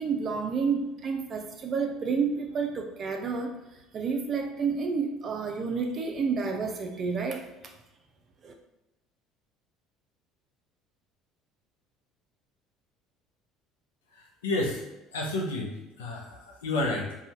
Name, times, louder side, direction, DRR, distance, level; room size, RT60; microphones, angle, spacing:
voice 1, 0.0-7.7 8.4-8.5, right 5 dB, 45° right, 3 dB, 0.5 m, -30 dB
voice 2, 14.1-14.8 15.1-17.2, left 2 dB, 85° left, 0 dB, 0.6 m, -31 dB
2.8 x 2.3 x 2.8 m, 0.96 s
hypercardioid pair, 65°, 0 cm